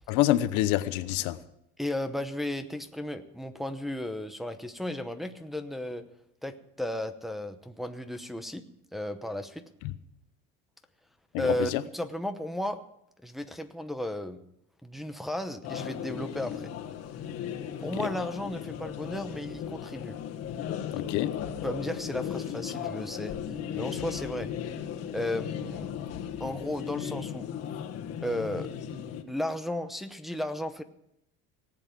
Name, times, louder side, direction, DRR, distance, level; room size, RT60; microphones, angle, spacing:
voice 1, 0.1-1.4 9.8-9.9 11.3-11.8 20.9-21.3, left 14 dB, 85° left, 13 dB, 1.0 m, -26 dB
voice 2, 1.8-6.0 6.4-8.6 8.9-9.6 11.4-12.8 13.2-14.4 14.8-16.7 17.8-20.2 21.6-23.3 23.7-24.5 25.1-25.9 26.4-27.5 28.2-28.7 29.3-30.8, left 1 dB, ahead, 6 dB, 0.8 m, -34 dB
sound 1, 15.6-29.2, left 9 dB, 55° left, 1.6 m, -36 dB
18.0 x 8.1 x 7.5 m, 0.78 s
cardioid pair, 140°, 29 cm